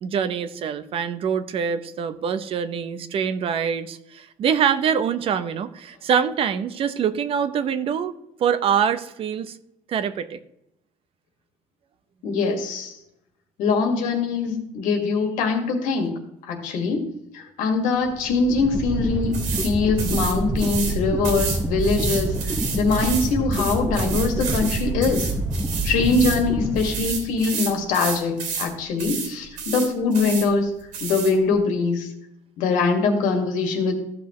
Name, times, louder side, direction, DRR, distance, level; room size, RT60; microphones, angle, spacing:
voice 1, 0.0-8.1 8.4-9.6 9.9-10.4, right 7 dB, 45° right, 12 dB, 0.7 m, -24 dB
voice 2, 12.2-13.0 13.6-17.1 17.3-25.3 25.8-30.7 31.0-32.1 32.6-34.0, left 4 dB, 90° left, 4 dB, 1.9 m, -23 dB
sound 1, 18.0-27.5, right 2 dB, 5° right, 0.8 m, -27 dB
sound 2, 19.3-19.7 20.0-20.9 21.2-26.4 26.7-28.7 29.0-29.3 29.6-30.5 30.9-31.3, right 6 dB, 85° right, 2.8 m, -31 dB
15.0 x 6.1 x 3.1 m, 0.81 s
cardioid pair, 150°, 13 cm